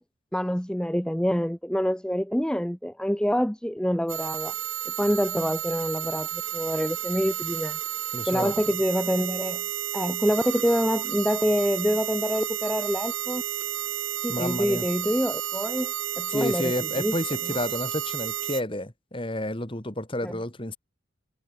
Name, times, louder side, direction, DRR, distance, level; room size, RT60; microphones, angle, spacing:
voice 1, 0.3-4.5 4.9-7.8 8.3-9.6 9.9-13.4 14.2-16.7 17.0-17.2 20.2-20.4, equal, 5° left, 0.8 m, -26 dB
sound 1, 4.1-18.6, right 11 dB, 85° right, 3.2 m, -31 dB
voice 2, 8.1-8.5 14.3-14.9 16.3-20.8, left 1 dB, 25° left, 2.4 m, -30 dB
head